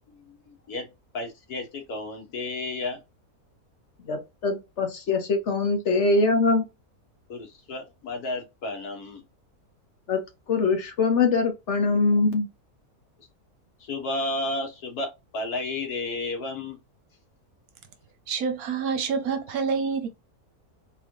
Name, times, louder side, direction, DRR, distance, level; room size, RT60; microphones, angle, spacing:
voice 1, 0.1-0.9 1.1-3.0 7.3-9.2 13.8-16.8, left 2 dB, 80° left, 1.7 m, -32 dB
voice 2, 4.1-6.6 10.1-10.2 10.5-12.5, left 3 dB, 55° left, 1.2 m, -23 dB
voice 3, 18.3-20.1, right 5 dB, 70° right, 1.2 m, -27 dB
4.0 x 3.7 x 3.1 m
omnidirectional pair, 1.6 m